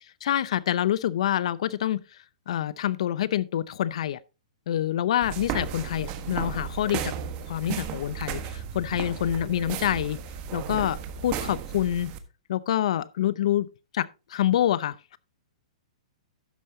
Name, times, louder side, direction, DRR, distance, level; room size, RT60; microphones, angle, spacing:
voice 1, 0.2-2.0 2.5-4.2 4.7-7.1 7.5-10.2 10.5-12.1 12.5-13.7 13.9-15.2, left 11 dB, 65° left, 0.6 m, -26 dB
sound 1, 5.2-12.2, right 8 dB, 35° right, 1.3 m, -34 dB
12.0 x 9.3 x 2.8 m
hypercardioid pair, 135°, 4 cm